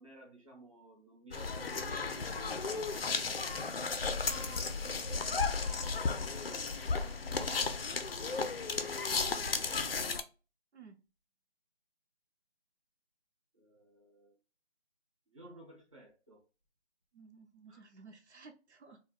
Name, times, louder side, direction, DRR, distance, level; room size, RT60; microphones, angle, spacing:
voice 1, 0.0-3.0 3.5-10.1 13.5-14.4 15.3-16.4 17.7-17.8, right 2 dB, 30° right, -3 dB, 0.6 m, -56 dB
sound 1, 1.3-10.2, left 4 dB, 60° left, 0.4 m, -34 dB
voice 2, 17.1-19.0, right 4 dB, 75° right, 4 dB, 0.7 m, -55 dB
2.4 x 2.2 x 3.5 m, 0.32 s
figure-of-eight pair, 170°, 34 cm